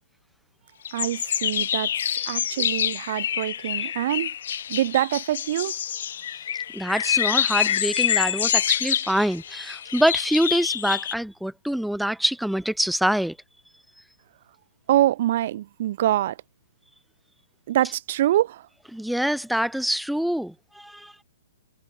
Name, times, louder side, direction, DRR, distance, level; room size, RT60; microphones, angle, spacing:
sound 1, 0.8-11.1, left 9 dB, 60° left, 0.8 m, -26 dB
voice 1, 0.9-4.3 4.7-5.8 14.9-16.4 17.7-18.7, right 13 dB, 45° right, 0.5 m, -25 dB
voice 2, 6.7-13.4 18.9-21.1, equal, ahead, 0.6 m, -25 dB
hypercardioid pair, 160°, 0 cm